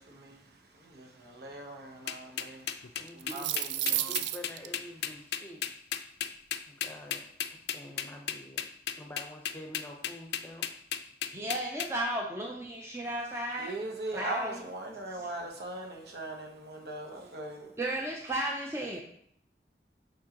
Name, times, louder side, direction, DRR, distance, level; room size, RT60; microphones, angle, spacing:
voice 1, 0.0-2.7 3.1-4.2 13.6-17.7, right 2 dB, 70° right, 0 dB, 1.1 m, -40 dB
sound 1, 2.1-11.9, left 10 dB, 70° left, 0.4 m, -34 dB
voice 2, 3.0-3.6 3.8-5.6 6.7-8.7 9.0-10.8, left 1 dB, 10° left, 1 dB, 0.8 m, -47 dB
sound 2, 3.1-4.7, right 13 dB, 90° right, 0.3 m, -31 dB
voice 3, 11.3-13.7 14.1-14.6 15.2-15.3 17.8-19.0, right 1 dB, 15° right, -1 dB, 0.5 m, -34 dB
7.4 x 4.5 x 2.9 m, 0.69 s
head